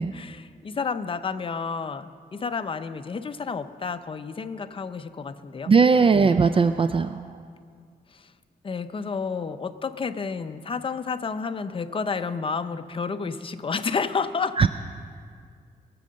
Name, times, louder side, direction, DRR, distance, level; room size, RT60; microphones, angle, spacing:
voice 1, 0.1-5.7 8.1-8.3 8.6-14.7, left 5 dB, 35° left, 10 dB, 0.6 m, -30 dB
voice 2, 5.7-7.3 14.6-14.7, right 5 dB, 35° right, 10 dB, 0.4 m, -19 dB
21.0 x 7.7 x 6.4 m, 2.1 s
wide cardioid pair, 125°, 16 cm